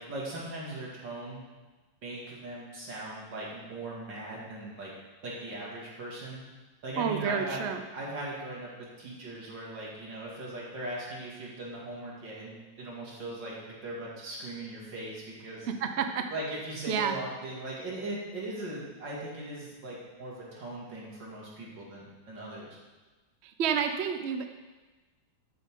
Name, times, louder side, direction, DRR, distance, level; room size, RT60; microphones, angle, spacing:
voice 1, 0.0-1.4 2.0-4.9 5.2-6.4 6.8-15.7 16.3-22.8, right 1 dB, 75° right, -4 dB, 3.1 m, -39 dB
voice 2, 7.0-7.8 15.8-16.2 16.9-17.2 23.4-24.5, right 7 dB, 55° right, 6 dB, 0.7 m, -29 dB
13.0 x 7.7 x 3.8 m, 1.2 s
omnidirectional pair, 2.0 m